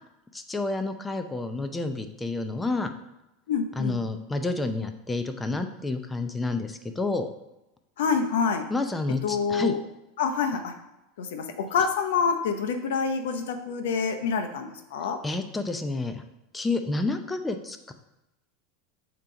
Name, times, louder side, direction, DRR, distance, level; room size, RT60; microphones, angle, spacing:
voice 1, 0.3-2.9 3.8-7.3 8.7-9.7 15.2-16.2 16.5-17.9, left 3 dB, 10° left, 7 dB, 0.6 m, -29 dB
voice 2, 3.5-4.0 8.0-8.7 9.2-9.8 10.2-10.7 11.2-15.2, left 5 dB, 80° left, 6 dB, 0.7 m, -27 dB
7.4 x 2.9 x 5.0 m, 0.95 s
supercardioid pair, 125°, 0 cm